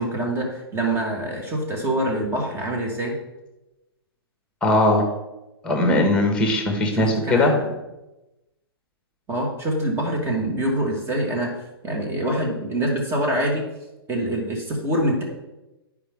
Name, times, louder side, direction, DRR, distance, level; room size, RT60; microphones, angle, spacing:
voice 1, 0.0-3.2 6.9-7.7 9.3-11.5 11.8-13.7 14.1-15.2, right 1 dB, 20° right, 1 dB, 1.7 m, -25 dB
voice 2, 4.6-5.0 5.6-7.5, left 1 dB, 5° left, 2 dB, 1.6 m, -19 dB
10.0 x 4.8 x 3.6 m, 1.0 s
hypercardioid pair, 125°, 13 cm